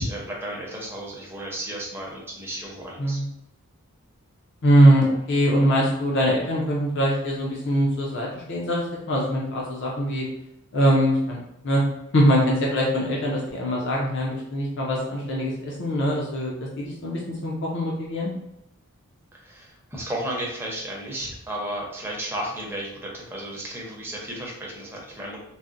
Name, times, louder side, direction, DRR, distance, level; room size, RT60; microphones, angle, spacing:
voice 1, 0.0-3.2 19.3-25.4, right 1 dB, 10° right, -3 dB, 0.7 m, -33 dB
voice 2, 4.6-10.3 10.7-11.8 12.1-18.3, equal, 55° left, -3 dB, 0.5 m, -22 dB
4.0 x 2.1 x 2.5 m, 0.81 s
head